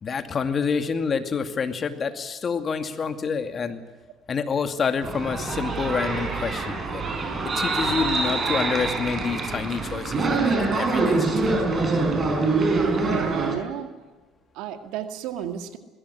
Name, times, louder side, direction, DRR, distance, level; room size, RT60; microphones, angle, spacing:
voice 1, 0.0-3.8 4.3-7.0 7.4-11.6, left 5 dB, 40° left, 9 dB, 2.3 m, -28 dB
sound 1, 5.0-13.6, right 3 dB, 35° right, 5.3 m, -25 dB
voice 2, 13.0-13.9 14.5-15.8, right 10 dB, 70° right, 8 dB, 2.0 m, -32 dB
21.5 x 16.0 x 9.9 m, 1.3 s
hypercardioid pair, 65°, 0 cm